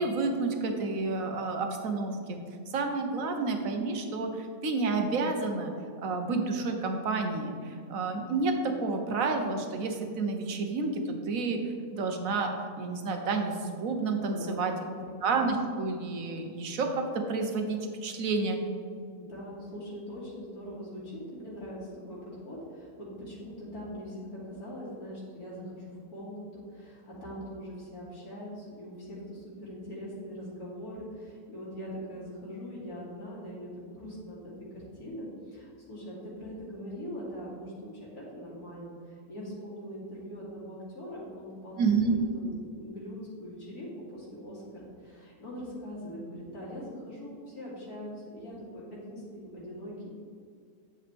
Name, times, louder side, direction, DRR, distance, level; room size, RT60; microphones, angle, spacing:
voice 1, 0.0-2.4 2.7-5.7 6.0-11.0 11.3-11.6 11.9-14.7 15.2-18.6 41.8-42.2, right 3 dB, 65° right, 4 dB, 1.3 m, -30 dB
voice 2, 14.2-14.9 19.2-50.2, equal, 80° left, -7 dB, 3.1 m, -42 dB
9.5 x 7.3 x 3.5 m, 2.2 s
omnidirectional pair, 1.6 m